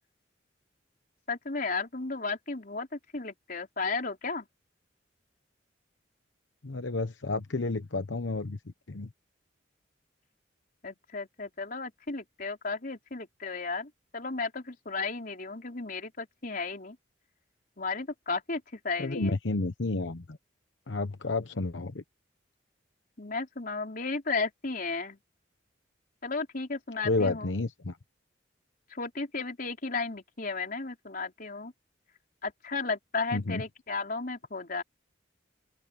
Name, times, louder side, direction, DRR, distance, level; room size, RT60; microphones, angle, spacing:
voice 1, 1.3-4.5 10.8-17.0 17.8-19.4 23.2-25.2 26.2-27.5 28.9-31.7 32.4-34.8, left 4 dB, 50° left, 4.1 m, -34 dB
voice 2, 6.6-8.6 8.9-9.1 19.0-20.2 20.9-22.0 27.0-28.0 33.3-33.6, left 3 dB, 85° left, 1.0 m, -30 dB
open air
head